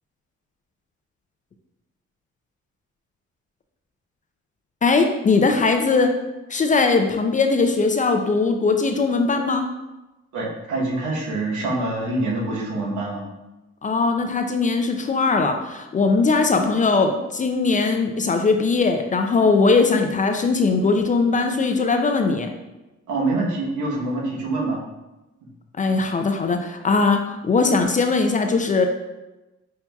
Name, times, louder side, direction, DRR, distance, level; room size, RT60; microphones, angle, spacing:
voice 1, 4.8-6.1 6.5-9.7 13.8-22.5 25.8-28.9, left 4 dB, 25° left, 5 dB, 0.3 m, -20 dB
voice 2, 10.3-13.2 23.1-24.8 25.4-25.5, right 2 dB, 80° right, -2 dB, 1.0 m, -25 dB
5.7 x 2.7 x 2.3 m, 1.0 s
cardioid pair, 90°, 30 cm